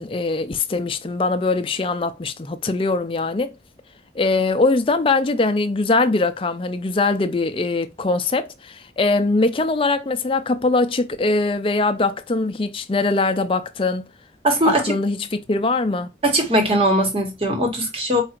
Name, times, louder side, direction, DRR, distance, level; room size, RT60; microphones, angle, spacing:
voice 1, 0.0-3.5 4.1-14.1 14.6-16.1, left 3 dB, 30° left, 0.4 m, -22 dB
voice 2, 14.4-14.9 16.2-18.2, right 1 dB, 30° right, 1.3 m, -20 dB
4.8 x 2.5 x 4.3 m
head